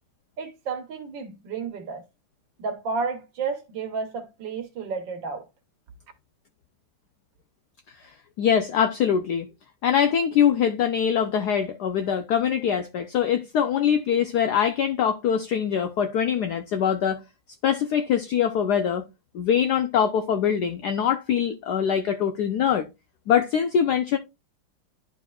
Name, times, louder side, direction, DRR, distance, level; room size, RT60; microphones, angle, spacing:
voice 1, 0.4-2.0 2.6-5.5, right 4 dB, 65° right, 1.7 m, -31 dB
voice 2, 8.4-9.5 9.8-17.2 17.6-19.0 19.3-22.9 23.3-24.2, left 8 dB, 80° left, 0.9 m, -23 dB
11.5 x 4.3 x 2.3 m
omnidirectional pair, 2.3 m